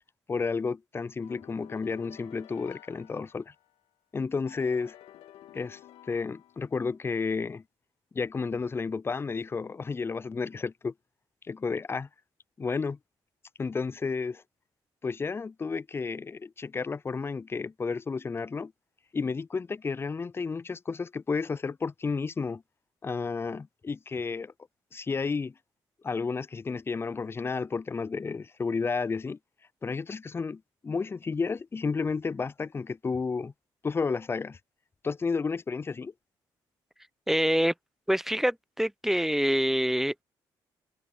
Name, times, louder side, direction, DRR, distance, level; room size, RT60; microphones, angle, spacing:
voice 1, 0.3-3.5 4.1-5.0 5.5-5.8 6.1-7.6 8.1-10.9 11.5-12.1 12.6-13.0 13.6-14.4 15.0-18.7 19.1-22.6 23.0-24.5 24.9-25.5 26.0-29.4 29.8-33.5 33.8-34.6 35.0-36.1, left 4 dB, 25° left, 0.3 m, -32 dB
sound 1, 1.2-3.8 4.5-6.9, left 13 dB, 75° left, 1.5 m, -52 dB
voice 2, 37.3-37.7 38.1-40.2, equal, 5° right, 0.8 m, -25 dB
open air
supercardioid pair, 60°, 10 cm